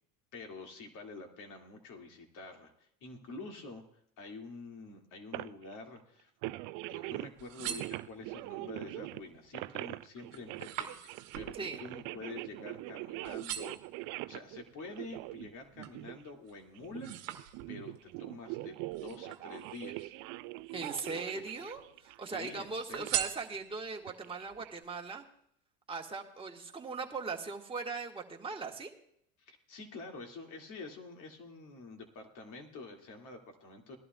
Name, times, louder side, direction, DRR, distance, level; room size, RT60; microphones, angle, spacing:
voice 1, 0.3-3.8 4.2-6.3 6.9-13.8 14.3-17.1 17.7-20.1 21.0-21.4 22.3-23.3 29.4-34.0, left 3 dB, 55° left, 3 dB, 2.3 m, -47 dB
sound 1, 5.3-5.7 6.4-7.3 7.6-16.3 16.8-23.3 24.1-24.8, right 19 dB, 60° right, 0.5 m, -43 dB
sound 2, 7.2-8.5 9.1-9.5 9.8-12.9 13.2-13.9 14.6-16.0 16.5-18.0 18.9-20.0 20.6-21.4 21.7-22.4 22.9-24.0 24.5-24.6, right 11 dB, 90° right, 1.1 m, -42 dB
voice 2, 20.7-25.2 25.9-28.9, right 4 dB, 15° right, 1 dB, 1.5 m, -39 dB
19.5 x 11.5 x 2.3 m, 0.70 s
supercardioid pair, 95°, 37 cm